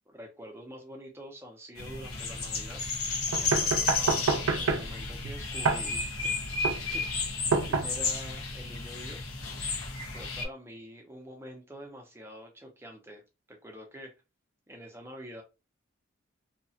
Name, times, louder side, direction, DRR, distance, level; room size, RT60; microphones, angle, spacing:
voice 1, 0.1-2.8 3.3-6.5 6.9-9.4 10.1-13.2 13.5-14.1 14.7-15.4, equal, 10° right, 0.6 m, -46 dB
sound 1, 1.8-10.4, left 4 dB, 90° left, 0.8 m, -33 dB
sound 2, 3.3-8.3, right 4 dB, 85° right, 0.4 m, -29 dB
2.8 x 2.3 x 2.7 m
head